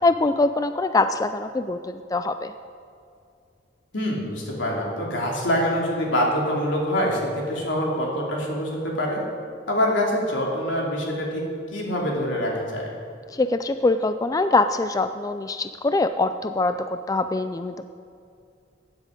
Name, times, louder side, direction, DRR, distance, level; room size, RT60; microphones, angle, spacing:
voice 1, 0.0-2.5 13.3-16.8 17.1-17.8, left 3 dB, 20° left, 10 dB, 0.3 m, -23 dB
voice 2, 3.9-9.2 9.7-11.4 11.7-12.9, equal, 80° left, -2 dB, 3.0 m, -25 dB
15.5 x 9.7 x 5.2 m, 2.4 s
head